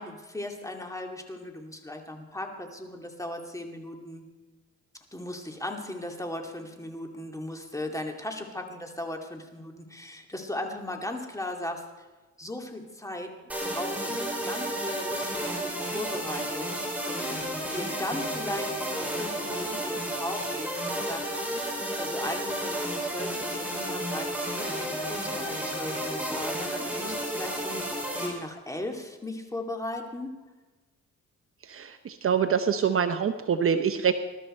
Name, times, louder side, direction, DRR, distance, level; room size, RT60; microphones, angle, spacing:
voice 1, 0.0-4.2 5.1-11.8 12.4-17.3 17.7-30.3, left 1 dB, 10° left, 3 dB, 2.5 m, -37 dB
sound 1, 13.5-28.3, right 1 dB, 5° right, 5.9 m, -32 dB
voice 2, 31.7-34.1, right 7 dB, 45° right, 9 dB, 0.8 m, -25 dB
20.5 x 12.5 x 4.4 m, 1.2 s
cardioid pair, 90°, 30 cm